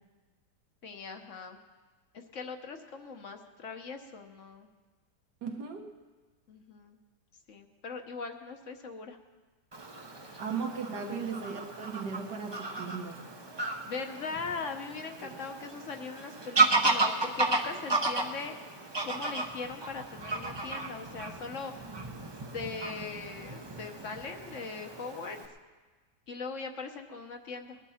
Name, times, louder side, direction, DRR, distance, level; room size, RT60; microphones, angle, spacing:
voice 1, 0.8-1.6 2.1-4.7 6.5-7.0 7.5-9.2 10.2-10.4 11.0-11.3 13.6-18.5 19.0-21.7 22.5-25.4 26.3-27.8, left 4 dB, 50° left, 5 dB, 1.2 m, -40 dB
voice 2, 5.4-5.9 10.4-13.2 15.2-15.3, right 5 dB, 75° right, 3 dB, 2.0 m, -37 dB
Fowl / Bird vocalization bird call bird song, 9.7-25.4, right 3 dB, 25° right, 0.6 m, -33 dB
20.5 x 11.0 x 4.3 m, 1.3 s
omnidirectional pair, 1.8 m